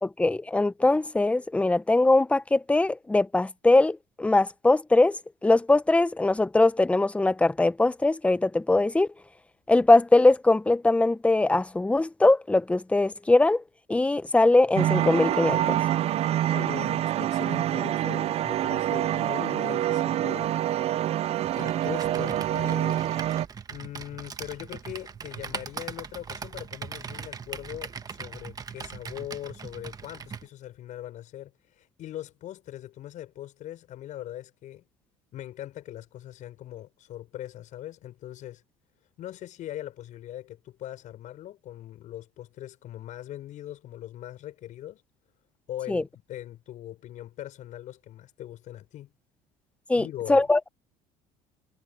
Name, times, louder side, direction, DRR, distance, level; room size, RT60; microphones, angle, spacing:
voice 1, 0.0-5.2 5.4-9.1 9.7-13.6 13.9-15.8 45.9-46.0 49.9-50.6, left 2 dB, 10° left, 0.8 m, -21 dB
sound 1, 14.8-23.5, right 12 dB, 45° right, 0.4 m, -26 dB
voice 2, 16.5-20.6 21.5-23.0 23.7-34.8 35.3-38.6 39.2-45.0 45.7-49.1 49.9-50.5, left 13 dB, 55° left, 6.6 m, -40 dB
Computer keyboard, 21.4-30.5, right 6 dB, 25° right, 1.2 m, -40 dB
cardioid pair, 125°, 15 cm